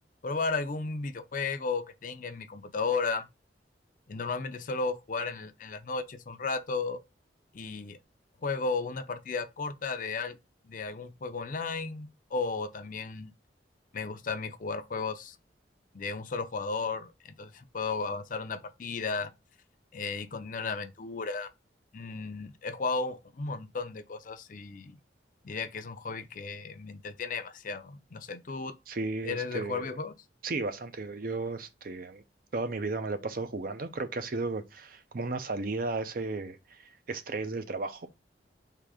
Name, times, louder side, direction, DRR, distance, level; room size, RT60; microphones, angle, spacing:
voice 1, 0.2-3.3 4.1-7.0 7.5-8.0 8.4-10.4 10.7-13.3 13.9-15.4 15.9-17.1 17.4-19.3 19.9-21.5 21.9-25.0 25.4-28.7 29.2-30.1, left 4 dB, 50° left, 0.6 m, -34 dB
voice 2, 28.9-30.0 30.4-32.2 32.5-38.1, right 3 dB, 50° right, 0.6 m, -34 dB
3.8 x 2.8 x 4.7 m
head